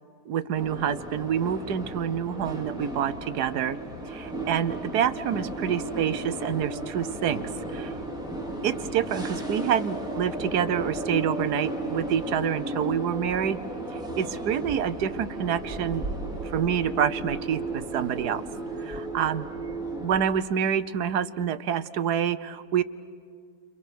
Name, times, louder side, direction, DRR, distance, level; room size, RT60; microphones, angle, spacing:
voice 1, 0.3-3.8 4.1-7.9 8.6-13.6 13.9-16.0 16.4-18.4 18.8-19.5 20.0-22.8, right 8 dB, 65° right, 12 dB, 1.3 m, -27 dB
sound 1, 0.5-20.2, right 1 dB, ahead, 3.6 m, -34 dB
30.0 x 29.5 x 6.4 m, 2.2 s
omnidirectional pair, 2.0 m